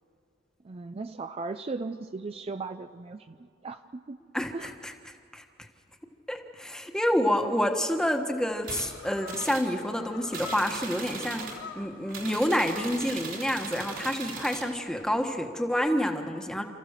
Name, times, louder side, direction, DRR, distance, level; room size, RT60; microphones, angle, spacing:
voice 1, 0.6-3.4 3.6-4.2 4.5-4.7 7.4-7.6, right 3 dB, 30° right, 9 dB, 0.4 m, -37 dB
voice 2, 4.3-5.7 6.3-16.6, equal, 5° left, 4 dB, 1.3 m, -28 dB
sound 1, 8.4-15.3, left 5 dB, 80° left, 1.8 m, -47 dB
sound 2, 8.6-8.9 9.3-9.7 10.3-11.6 12.1-14.7, right 4 dB, 75° right, 3.7 m, -39 dB
28.5 x 14.5 x 6.6 m, 2.5 s
head